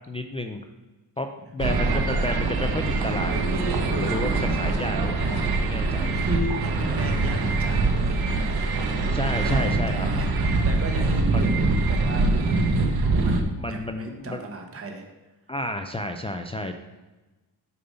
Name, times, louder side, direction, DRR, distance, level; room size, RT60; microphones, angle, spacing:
voice 1, 0.1-0.6 1.2-1.3 1.5-6.1 9.1-10.1 11.3-11.5 13.6-14.4 15.5-16.7, left 1 dB, 15° left, 5 dB, 0.3 m, -31 dB
sound 1, 1.6-13.4, right 3 dB, 65° right, 1.0 m, -24 dB
voice 2, 5.4-8.6 9.4-12.8 13.2-15.1, right 1 dB, 35° right, 3 dB, 1.2 m, -36 dB
6.8 x 5.4 x 5.4 m, 1.1 s
cardioid pair, 140°, 41 cm